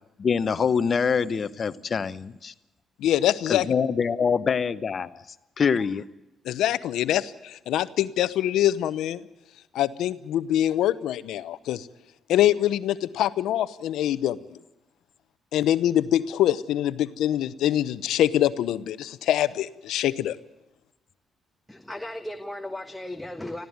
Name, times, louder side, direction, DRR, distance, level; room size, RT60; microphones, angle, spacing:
voice 1, 0.2-2.5 3.5-5.2 5.6-6.0, left 6 dB, 45° left, 15 dB, 0.9 m, -25 dB
voice 2, 3.0-3.7 6.4-9.2 9.7-11.9 12.3-14.4 15.5-20.4, left 12 dB, 80° left, 15 dB, 0.8 m, -24 dB
voice 3, 21.7-23.7, left 1 dB, 5° left, 6 dB, 1.4 m, -36 dB
20.5 x 15.0 x 9.4 m, 0.97 s
supercardioid pair, 75°, 0 cm